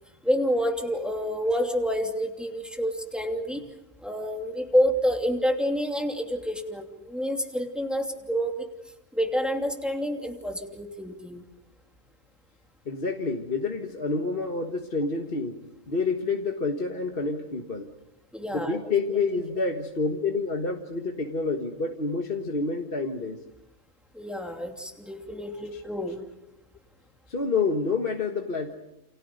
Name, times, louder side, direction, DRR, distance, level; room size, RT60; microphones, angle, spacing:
voice 1, 0.2-3.6 4.0-8.6 9.1-11.4 18.3-19.2 24.1-26.2, equal, ahead, 2 dB, 2.8 m, -28 dB
voice 2, 12.9-15.5 15.9-17.9 18.5-23.4 25.7-25.8 27.3-28.7, left 4 dB, 40° left, 3 dB, 1.7 m, -28 dB
29.0 x 28.5 x 5.3 m, 0.90 s
omnidirectional pair, 1.5 m